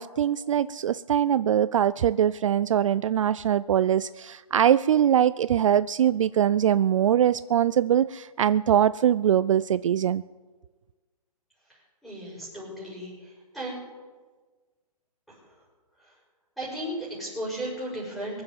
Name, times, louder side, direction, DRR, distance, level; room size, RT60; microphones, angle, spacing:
voice 1, 0.0-10.2, right 10 dB, 55° right, 17 dB, 0.4 m, -22 dB
voice 2, 12.0-13.8 15.3-15.4 16.6-18.4, right 1 dB, ahead, -7 dB, 5.5 m, -35 dB
23.0 x 7.6 x 7.8 m, 1.4 s
hypercardioid pair, 160°, 20 cm